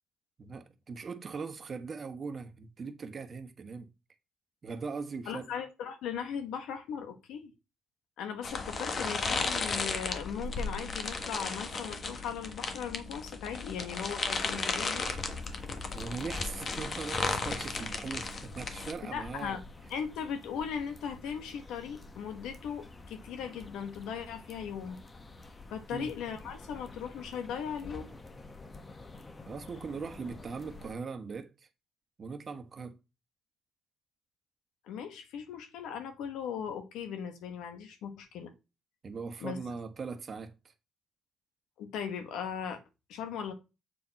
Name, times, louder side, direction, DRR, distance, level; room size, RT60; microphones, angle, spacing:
voice 1, 0.4-3.9 4.6-5.5 15.9-19.6 25.9-26.1 29.4-31.7 32.2-33.0 39.0-40.7, right 5 dB, 40° right, 1.2 m, -40 dB
voice 2, 5.3-7.5 8.2-15.0 19.1-19.6 19.9-25.0 25.7-28.1 34.9-38.5 39.4-39.6 41.8-42.8 43.1-43.5, left 7 dB, 90° left, 1.4 m, -38 dB
sound 1, 8.4-18.9, left 4 dB, 45° left, 1.3 m, -35 dB
sound 2, 15.0-31.0, left 3 dB, 25° left, 1.1 m, -48 dB
7.5 x 4.4 x 4.3 m
cardioid pair, 90°, 0 cm